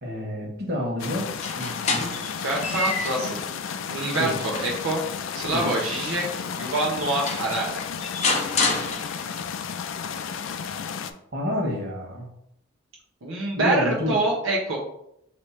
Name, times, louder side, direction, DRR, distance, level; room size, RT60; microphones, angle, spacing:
voice 1, 0.0-1.3 1.5-2.1 4.2-4.4 5.5-5.7 11.3-12.3 13.6-14.1, left 1 dB, 55° right, -2 dB, 1.3 m, -28 dB
sound 1, 1.0-11.1, left 7 dB, 75° left, 0.4 m, -33 dB
sound 2, 1.3-3.3 3.8-6.4 6.9-7.0 7.3-9.5, left 3 dB, 35° left, 0.6 m, -29 dB
voice 2, 2.4-3.5 3.9-5.0 5.3-6.2 6.6-7.8 13.2-14.8, right 2 dB, 85° right, -3 dB, 0.7 m, -26 dB
3.1 x 2.9 x 4.6 m, 0.77 s
head